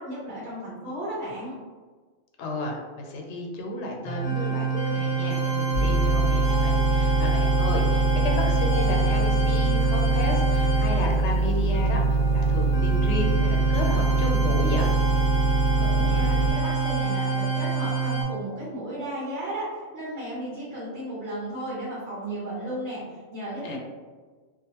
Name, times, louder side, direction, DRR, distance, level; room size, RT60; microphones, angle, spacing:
voice 1, 0.0-1.6 15.7-23.8, right 1 dB, 80° right, -7 dB, 1.1 m, -34 dB
voice 2, 2.4-14.9 23.6-23.8, left 2 dB, 85° left, 1 dB, 0.9 m, -32 dB
sound 1, 4.0-18.2, right 5 dB, 35° left, 0.5 m, -26 dB
sound 2, 5.7-16.5, right 2 dB, 60° right, 0.7 m, -24 dB
2.5 x 2.4 x 2.8 m, 1.4 s
omnidirectional pair, 1.1 m